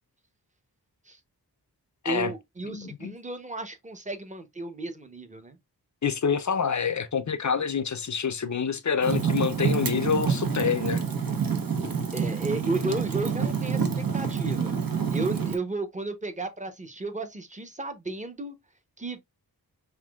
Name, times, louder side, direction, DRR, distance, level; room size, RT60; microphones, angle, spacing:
voice 1, 2.0-5.6 12.1-14.7 15.1-18.5 19.0-19.2, right 2 dB, 20° right, 0.9 m, -33 dB
voice 2, 2.6-3.1 6.0-11.0, left 6 dB, 45° left, 0.6 m, -27 dB
Fire, 9.0-15.6, right 6 dB, 55° right, 1.0 m, -27 dB
5.8 x 2.7 x 2.4 m
wide cardioid pair, 70°, 40 cm